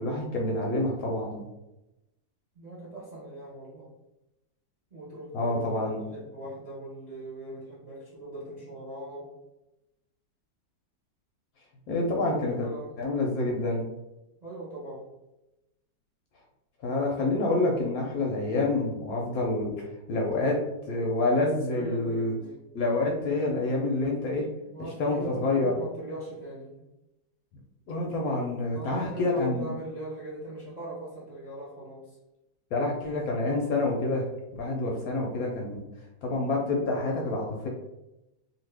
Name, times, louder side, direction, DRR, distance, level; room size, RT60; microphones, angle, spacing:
voice 1, 0.0-1.4 5.3-6.0 11.9-12.7 13.0-13.8 16.8-22.3 22.7-24.5 25.0-25.7 27.9-29.7 32.7-34.3 34.6-35.8 36.2-37.7, left 2 dB, 70° left, -1 dB, 0.9 m, -27 dB
voice 2, 2.5-3.9 4.9-9.3 12.2-12.9 14.4-15.1 21.7-22.6 24.6-26.8 28.7-32.1, right 1 dB, 40° right, -7 dB, 0.6 m, -40 dB
2.8 x 2.6 x 3.2 m, 0.94 s
omnidirectional pair, 1.9 m